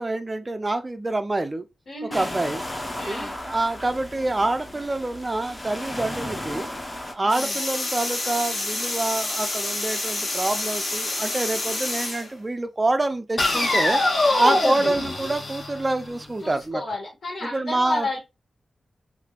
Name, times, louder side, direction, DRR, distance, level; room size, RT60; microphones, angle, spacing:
voice 1, 0.0-1.6 2.1-2.6 3.1-6.7 7.1-14.0 14.4-16.8 17.5-18.1, right 2 dB, 25° right, 0.4 m, -26 dB
voice 2, 1.9-2.4 2.9-3.3 7.2-7.6 14.2-14.7 16.4-18.2, left 2 dB, 70° left, 1.8 m, -32 dB
sound 1, 2.1-7.1, left 1 dB, 20° left, 0.7 m, -34 dB
sound 2, 7.3-12.3 13.4-16.3, left 2 dB, 50° left, 1.1 m, -26 dB
3.6 x 3.3 x 2.3 m
wide cardioid pair, 135°, 0 cm